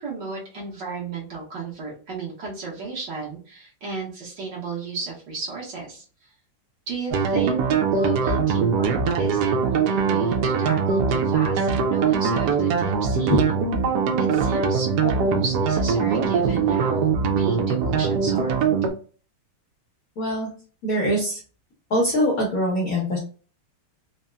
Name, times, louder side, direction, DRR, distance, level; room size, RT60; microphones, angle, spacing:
voice 1, 0.0-6.3 6.9-7.6 7.9-13.5 14.2-18.6, right 4 dB, 60° right, -4 dB, 1.5 m, -34 dB
sound 1, 7.1-18.9, right 5 dB, 90° right, 0.8 m, -22 dB
voice 2, 20.2-20.5 20.8-21.4 21.9-23.2, equal, 60° left, -2 dB, 0.9 m, -23 dB
3.9 x 2.1 x 2.2 m, 0.39 s
omnidirectional pair, 2.4 m